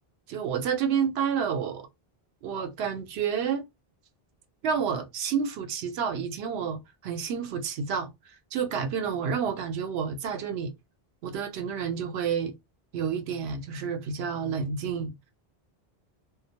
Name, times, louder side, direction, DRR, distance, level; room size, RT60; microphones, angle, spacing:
voice 1, 0.3-1.9 2.4-3.6 4.6-10.7 11.2-12.5 12.9-15.2, right 7 dB, 85° right, 0.8 m, -30 dB
2.2 x 2.1 x 2.7 m
omnidirectional pair, 1.0 m